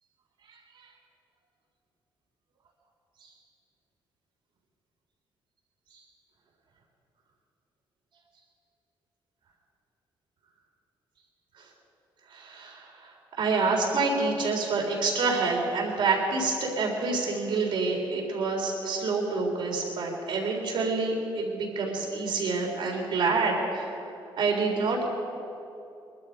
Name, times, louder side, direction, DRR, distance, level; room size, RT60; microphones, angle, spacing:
voice 1, 12.3-12.9 13.4-23.9 24.4-25.0, right 3 dB, 70° right, -1 dB, 4.0 m, -27 dB
21.5 x 12.5 x 5.3 m, 2.7 s
cardioid pair, 85°, 9 cm